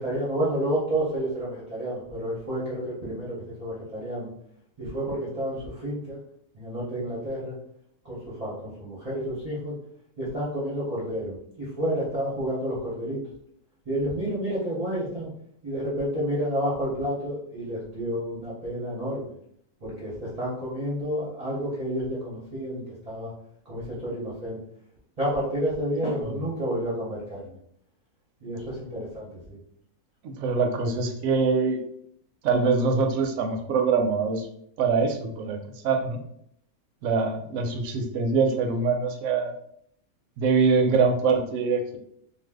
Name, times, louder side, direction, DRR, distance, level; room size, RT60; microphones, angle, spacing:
voice 1, 0.0-4.3 4.8-6.2 6.5-7.6 8.0-9.8 10.2-13.2 13.9-15.3 15.6-19.3 19.8-23.3 23.7-24.6 25.2-27.6 28.4-29.6, equal, 35° right, -8 dB, 0.6 m, -30 dB
voice 2, 30.2-31.8 32.4-34.5 34.8-35.6 35.8-36.2 37.0-39.5 40.4-42.0, right 4 dB, 70° right, 5 dB, 0.8 m, -24 dB
2.5 x 2.2 x 3.4 m, 0.69 s
omnidirectional pair, 1.6 m